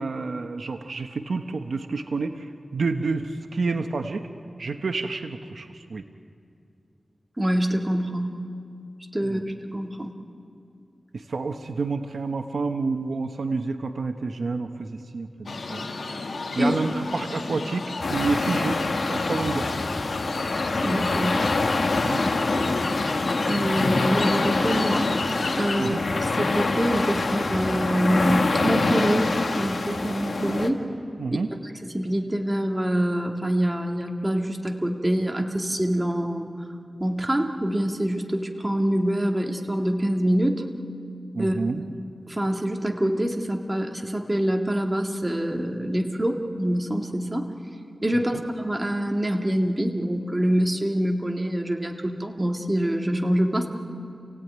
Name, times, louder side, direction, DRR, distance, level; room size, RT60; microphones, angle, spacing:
voice 1, 0.0-4.3 4.6-6.0 9.2-9.4 11.1-15.8 16.5-17.8 18.1-18.8 19.1-19.7 22.0-22.2 25.8-26.0 31.2-31.5 41.3-41.8 48.1-48.4, right 4 dB, 80° right, 6 dB, 1.1 m, -29 dB
voice 2, 7.4-8.3 9.1-10.1 16.6-16.8 20.8-21.4 23.5-25.1 25.6-30.8 31.8-36.5 37.0-40.6 41.4-41.6 42.3-47.5 48.0-53.7, right 1 dB, 20° right, 2 dB, 2.1 m, -25 dB
sound 1, 15.5-25.9, left 3 dB, 85° left, 1.9 m, -32 dB
sound 2, 18.0-30.7, left 3 dB, 70° left, 1.7 m, -25 dB
28.0 x 17.0 x 9.4 m, 2.4 s
wide cardioid pair, 80°, 0 cm